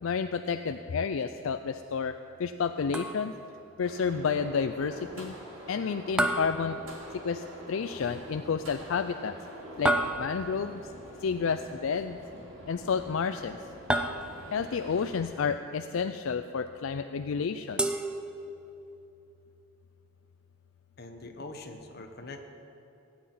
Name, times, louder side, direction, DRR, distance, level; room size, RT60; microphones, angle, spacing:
voice 1, 0.0-3.3 3.8-5.4 5.7-6.8 7.1-9.3 9.8-10.8 11.2-12.2 12.7-13.6 14.5-17.9, left 6 dB, 70° left, 9 dB, 0.4 m, -30 dB
sound 1, 2.9-3.6 6.2-7.4 9.9-10.7 13.9-14.7 17.8-18.8, right 1 dB, 5° right, 0.5 m, -31 dB
sound 2, 3.8-15.2, right 1 dB, 70° right, 3.4 m, -46 dB
voice 2, 21.0-22.4, left 2 dB, 50° left, 5 dB, 1.1 m, -43 dB
16.5 x 6.1 x 9.4 m, 2.8 s
head